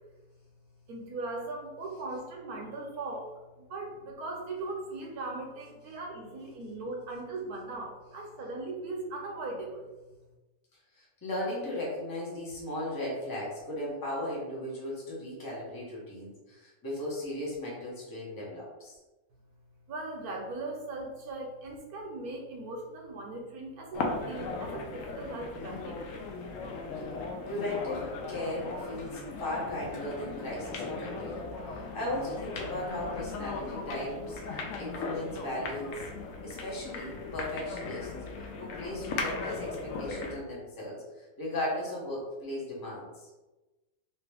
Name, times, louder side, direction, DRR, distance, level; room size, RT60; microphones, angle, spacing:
voice 1, 0.9-3.3 3.6-9.9 19.9-26.0, right 2 dB, 65° right, 0 dB, 1.1 m, -39 dB
voice 2, 10.9-19.0 27.5-31.4 31.7-34.4 34.8-36.0 36.4-38.1 38.6-43.3, left 1 dB, 15° left, -5 dB, 0.7 m, -36 dB
sound 1, 23.9-40.4, left 3 dB, 80° left, 0.7 m, -38 dB
3.0 x 2.9 x 3.3 m, 1.1 s
omnidirectional pair, 1.9 m